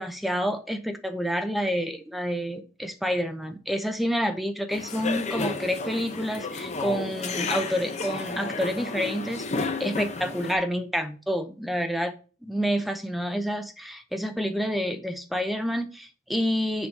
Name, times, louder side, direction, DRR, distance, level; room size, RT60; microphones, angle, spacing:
voice 1, 0.0-12.1 12.4-16.9, equal, ahead, 0.6 m, -28 dB
sound 1, 4.7-10.5, left 3 dB, 35° left, 0.7 m, -32 dB
7.2 x 4.9 x 4.1 m
head